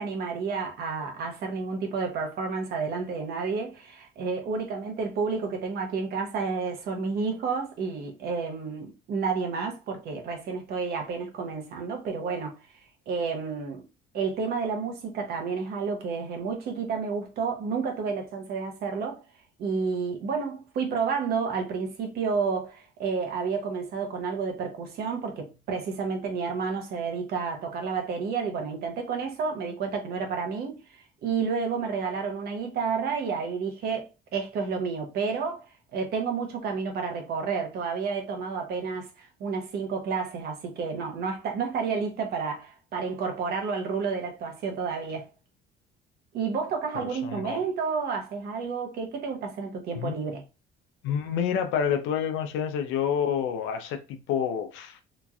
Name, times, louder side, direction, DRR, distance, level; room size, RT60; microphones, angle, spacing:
voice 1, 0.0-12.6 13.1-13.8 14.1-19.2 19.6-30.8 31.2-35.6 35.9-45.3 46.3-50.4, right 5 dB, 55° right, 0.8 m, -30 dB
voice 2, 47.1-47.6 49.9-50.2 51.0-55.0, left 8 dB, 80° left, 0.6 m, -28 dB
3.0 x 2.5 x 2.4 m
cardioid pair, 155°, 20 cm